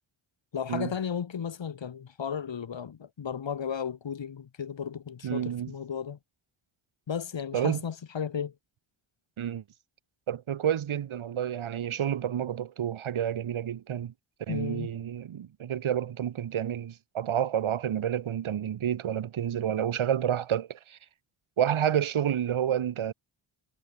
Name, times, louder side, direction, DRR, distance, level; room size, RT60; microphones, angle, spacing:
voice 1, 0.5-6.2 7.1-8.5 14.5-14.9, left 7 dB, 65° left, 4.7 m, -34 dB
voice 2, 5.2-5.7 7.5-7.8 9.4-9.6 10.3-14.1 14.5-21.0 21.6-23.1, right 9 dB, 85° right, 2.4 m, -29 dB
wide cardioid pair, 100°, 47 cm